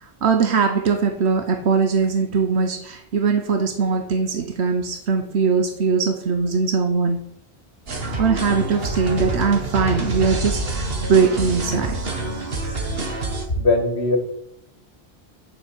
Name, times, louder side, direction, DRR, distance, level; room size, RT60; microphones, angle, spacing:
voice 1, 0.0-7.2 8.2-12.0, right 5 dB, 80° right, 1.2 m, -21 dB
sound 1, 7.9-13.5, right 2 dB, 65° right, 1.9 m, -27 dB
voice 2, 13.6-14.2, left 2 dB, 80° left, 2.1 m, -19 dB
9.0 x 7.2 x 8.4 m
omnidirectional pair, 1.1 m